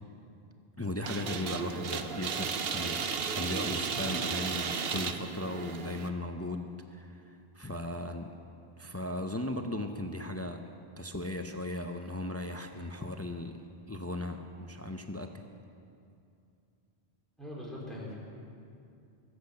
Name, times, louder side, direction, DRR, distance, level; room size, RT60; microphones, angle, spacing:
voice 1, 0.8-8.3 8.8-10.6 11.0-13.6 13.9-15.3, left 1 dB, 20° left, 5 dB, 0.5 m, -37 dB
sound 1, 1.0-6.1, right 6 dB, 70° right, 1.0 m, -34 dB
voice 2, 17.4-18.1, left 1 dB, ahead, -6 dB, 4.2 m, -41 dB
22.5 x 8.1 x 6.7 m, 2.5 s
omnidirectional pair, 1.1 m